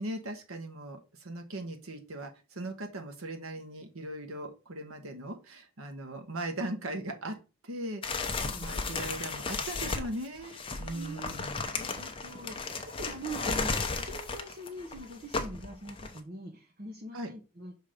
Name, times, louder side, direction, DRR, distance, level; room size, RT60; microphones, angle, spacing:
voice 1, 0.0-7.4 7.6-11.5 17.1-17.3, right 1 dB, 70° right, 6 dB, 1.3 m, -39 dB
sound 1, 8.0-16.2, left 4 dB, 25° left, 0.7 m, -34 dB
voice 2, 8.4-8.7 10.8-11.3 11.7-17.8, right 1 dB, 40° right, 2 dB, 0.8 m, -43 dB
5.9 x 3.7 x 4.9 m, 0.31 s
head